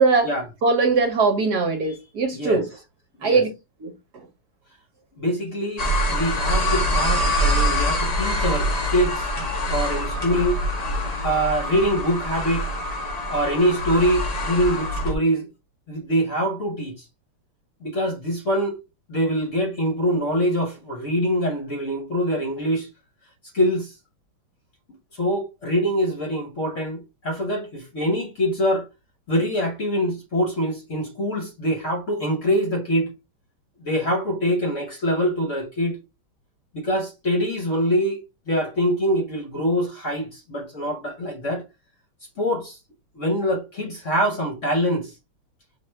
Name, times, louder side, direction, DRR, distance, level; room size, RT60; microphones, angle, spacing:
voice 1, 0.0-0.3 0.6-2.7 3.2-3.5 3.8-3.9, right 4 dB, 60° right, 1.2 m, -20 dB
voice 2, 5.2-9.3 9.7-10.6 11.1-12.7 13.3-15.5 15.9-17.0 17.8-18.7 19.1-22.9 23.5-23.9 25.1-28.9 29.3-33.1 33.8-36.0 36.7-38.2 38.5-41.6 42.4-42.8 43.1-45.1, equal, 45° left, 1.1 m, -24 dB
sound 1, 5.8-15.1, equal, 65° left, 0.4 m, -24 dB
5.8 x 2.5 x 3.3 m
omnidirectional pair, 2.3 m